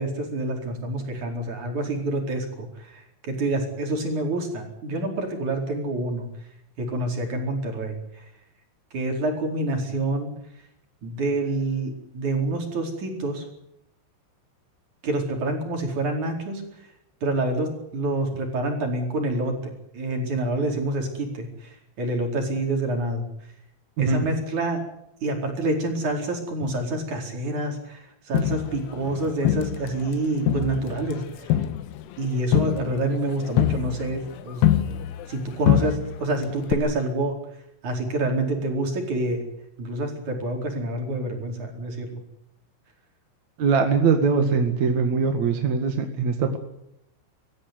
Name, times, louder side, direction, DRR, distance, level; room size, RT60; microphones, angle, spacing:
voice 1, 0.0-6.3 6.8-8.2 8.9-10.3 11.0-13.4 15.0-16.6 17.2-19.6 19.9-23.3 24.0-24.8 25.2-31.5 32.2-34.7 35.3-37.4 37.8-39.4 39.8-42.2, right 2 dB, 35° right, 2 dB, 5.5 m, -27 dB
Crowd, 28.3-30.1 30.5-35.4 35.7-36.3 36.7-36.8, left 12 dB, 85° left, 4.1 m, -24 dB
voice 2, 43.6-46.6, right 5 dB, 55° right, 5 dB, 2.1 m, -22 dB
24.0 x 15.5 x 9.7 m, 0.80 s
omnidirectional pair, 6.0 m